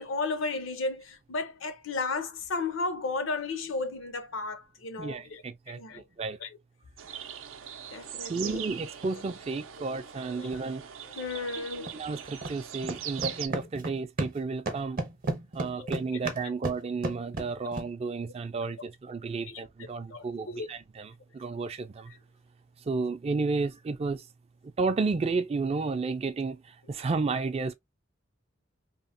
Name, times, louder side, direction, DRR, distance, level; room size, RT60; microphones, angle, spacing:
voice 1, 0.0-6.0 6.4-6.5 7.9-8.6 9.8-10.0 10.2-10.6 11.0-12.0 15.8-15.9 19.5-19.6 20.1-20.7, left 3 dB, 80° left, 0.6 m, -34 dB
voice 2, 5.0-6.4 8.3-10.9 11.9-15.0 15.5-22.1 22.9-24.2 24.8-27.7, right 4 dB, 30° right, 0.3 m, -32 dB
sound 1, 7.0-13.5, right 9 dB, 90° right, 0.5 m, -41 dB
sound 2, 8.9-9.1 10.5-10.6 11.9-12.0 12.4-12.6 12.8-14.4 14.7-17.9, right 2 dB, 45° right, 0.7 m, -33 dB
3.0 x 2.1 x 2.5 m
head